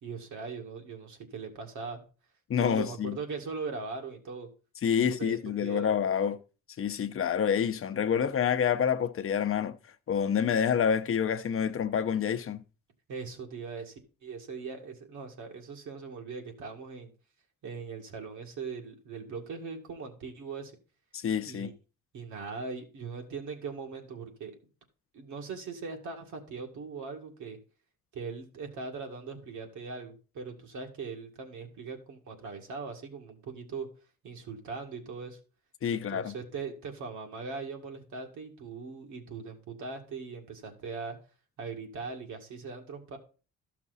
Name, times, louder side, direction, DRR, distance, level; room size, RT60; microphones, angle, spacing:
voice 1, 0.0-2.0 2.6-4.5 4.9-5.9 13.1-17.1 17.6-20.7 21.4-21.7 22.1-24.5 25.1-27.6 28.1-33.9 34.2-35.4 35.9-41.2 41.6-43.2, right 4 dB, 75° right, 2.1 m, -40 dB
voice 2, 2.5-3.2 4.8-6.4 6.8-9.8 10.1-12.6 21.1-21.7 35.8-36.3, left 8 dB, 45° left, 0.8 m, -28 dB
12.5 x 5.9 x 4.1 m
cardioid pair, 90°, 30 cm